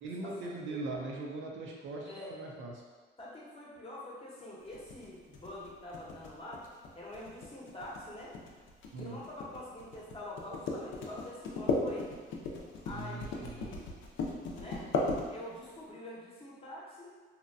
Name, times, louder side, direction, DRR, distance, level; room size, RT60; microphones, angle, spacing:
voice 1, 0.0-2.7 8.9-9.2 12.9-13.7, right 2 dB, 70° right, -1 dB, 0.5 m, -40 dB
voice 2, 2.0-2.4 3.2-6.7 7.0-8.4 8.9-12.1 12.8-13.8 14.5-14.9 15.3-17.2, left 1 dB, 30° left, -5 dB, 0.7 m, -45 dB
sound 1, 4.7-15.8, left 3 dB, 75° left, 0.5 m, -36 dB
2.8 x 2.2 x 2.5 m, 1.4 s
cardioid pair, 90°, 20 cm